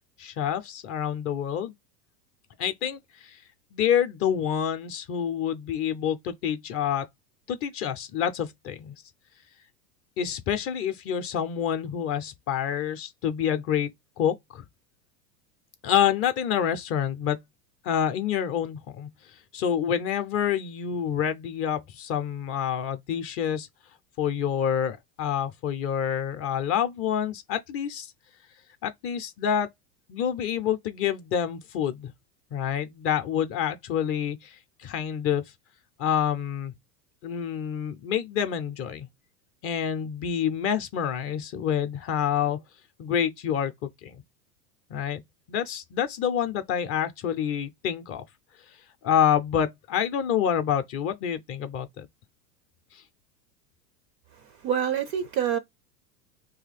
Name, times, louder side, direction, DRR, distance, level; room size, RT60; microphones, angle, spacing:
voice 1, 0.2-1.7 2.6-3.4 3.7-7.1 7.5-8.9 10.2-13.9 14.2-14.7 15.8-17.4 17.8-19.1 19.5-23.7 24.2-28.1 28.8-29.7 30.1-32.1 32.5-35.4 36.0-36.7 37.2-39.1 39.6-42.6 43.0-44.2 44.9-45.2 45.5-48.2 49.0-52.1, left 9 dB, 30° left, 0.5 m, -27 dB
voice 2, 54.4-55.6, right 9 dB, 40° right, 0.4 m, -27 dB
2.9 x 2.8 x 4.0 m
hypercardioid pair, 105°, 48 cm